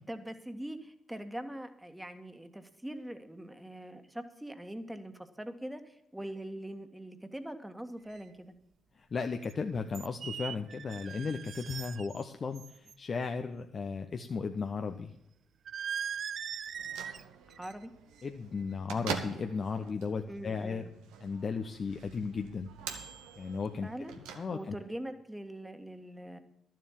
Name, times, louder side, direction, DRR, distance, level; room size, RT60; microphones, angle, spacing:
voice 1, 0.0-8.5 17.5-17.9 20.3-20.9 23.8-24.1 24.5-26.4, right 1 dB, 10° right, 8 dB, 1.8 m, -42 dB
sound 1, 8.1-8.2 9.4-9.5 9.9-12.2 12.5-12.9 15.7-17.2 17.5-17.9 18.2-18.5, right 8 dB, 60° right, 0.3 m, -40 dB
voice 2, 8.9-15.1 18.2-20.8 21.2-22.7 23.4-23.9 24.3-24.8, left 5 dB, 50° left, 6 dB, 0.9 m, -35 dB
Bell / Microwave oven, 16.6-24.9, right 7 dB, 80° right, 1.2 m, -45 dB
12.0 x 7.6 x 7.3 m, 0.79 s
hypercardioid pair, 45°, 0 cm